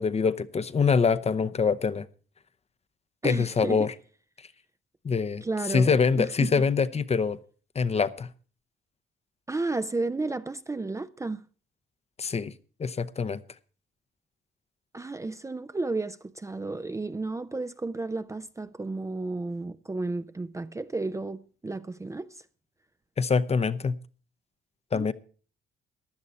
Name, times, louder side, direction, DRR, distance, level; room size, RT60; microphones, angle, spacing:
voice 1, 0.0-2.1 3.2-3.9 5.0-5.4 5.7-7.4 7.7-8.3 12.2-12.5 12.8-13.4 23.2-23.9 24.9-25.1, left 5 dB, 30° left, 0.7 m, -24 dB
voice 2, 3.2-3.9 5.4-5.9 6.2-6.6 9.5-11.4 14.9-22.4 24.9-25.1, right 3 dB, 15° right, 0.5 m, -32 dB
15.5 x 11.0 x 4.1 m
cardioid pair, 90°, 20 cm